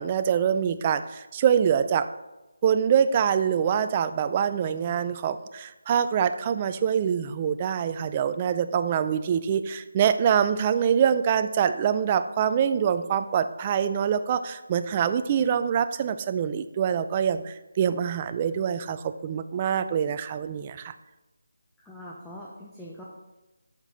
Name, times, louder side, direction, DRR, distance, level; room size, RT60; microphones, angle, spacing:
voice 1, 0.0-2.1 2.6-20.9, right 8 dB, 25° right, 11 dB, 0.4 m, -25 dB
voice 2, 21.8-23.0, left 1 dB, 5° left, -6 dB, 0.8 m, -42 dB
7.9 x 6.6 x 3.9 m, 1.1 s
figure-of-eight pair, 160°, 0 cm